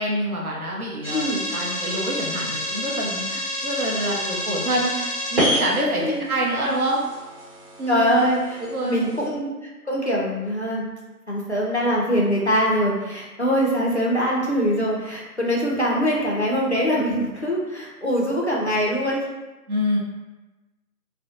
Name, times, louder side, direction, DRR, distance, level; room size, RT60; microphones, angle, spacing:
voice 1, 0.0-1.2 1.5-7.0 7.8-8.3 8.6-9.0 19.7-20.0, equal, 65° right, -3 dB, 0.7 m, -26 dB
sound 1, 1.0-9.3, equal, 35° right, 1.0 m, -29 dB
voice 2, 1.1-1.5 6.0-6.2 7.9-9.5 9.9-10.9 11.3-19.3, equal, 45° left, -3 dB, 0.4 m, -23 dB
2.4 x 2.0 x 2.6 m, 1.1 s
figure-of-eight pair, 160°, 47 cm